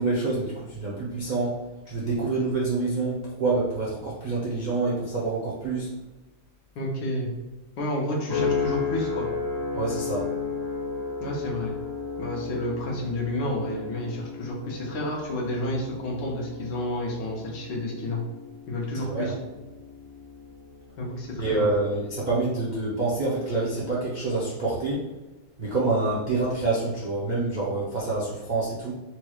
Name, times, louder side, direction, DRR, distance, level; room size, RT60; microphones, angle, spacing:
voice 1, 0.0-1.6 1.9-5.9 9.7-10.3 19.0-19.4 21.4-25.0 25.6-28.9, right 3 dB, 80° right, -7 dB, 0.4 m, -27 dB
voice 2, 6.7-7.3 7.8-9.3 11.2-11.7 12.2-18.2 18.7-19.4 21.0-21.7, left 1 dB, 85° left, -2 dB, 1.6 m, -30 dB
sound 1, 8.3-22.8 23.3-23.7, left 5 dB, 65° left, 1.6 m, -34 dB
4.3 x 3.0 x 2.3 m, 1.1 s
omnidirectional pair, 1.9 m